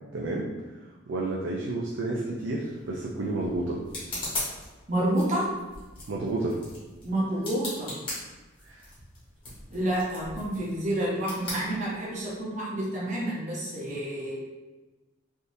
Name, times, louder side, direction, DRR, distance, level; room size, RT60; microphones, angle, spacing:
voice 1, 0.1-0.5 1.1-3.8 6.1-6.6 8.6-8.8, right 2 dB, 65° right, -3 dB, 0.4 m, -30 dB
sound 1, 2.6-12.4, left 1 dB, 25° left, 1.1 m, -40 dB
voice 2, 4.9-5.5 7.0-7.9 9.7-14.4, right 1 dB, 35° right, -6 dB, 0.8 m, -29 dB
3.4 x 2.7 x 2.6 m, 1.2 s
head